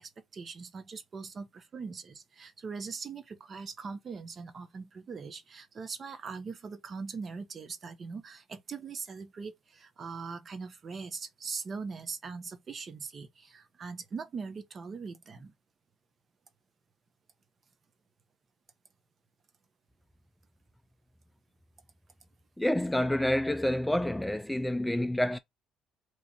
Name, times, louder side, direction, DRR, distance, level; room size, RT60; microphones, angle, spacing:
voice 1, 0.0-15.5, right 5 dB, 40° right, 0.8 m, -41 dB
voice 2, 22.6-25.4, left 1 dB, 5° left, 0.3 m, -28 dB
3.0 x 2.5 x 4.2 m
supercardioid pair, 80°, 0 cm